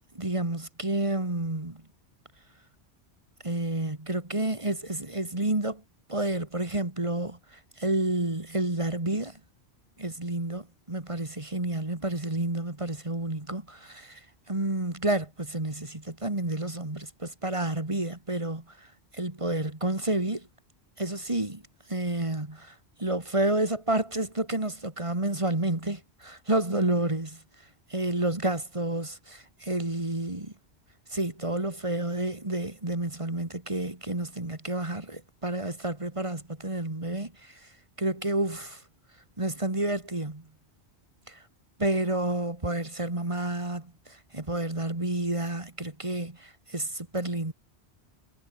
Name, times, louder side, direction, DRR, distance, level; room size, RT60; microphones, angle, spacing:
voice 1, 0.1-1.8 3.4-5.8 6.1-9.4 10.0-18.9 19.1-20.5 21.0-21.6 21.9-27.4 27.9-30.5 31.1-37.7 38.0-38.8 39.4-40.5 41.3-41.4 41.8-47.5, right 2 dB, 30° right, 2.5 m, -30 dB
omnidirectional pair, 1.1 m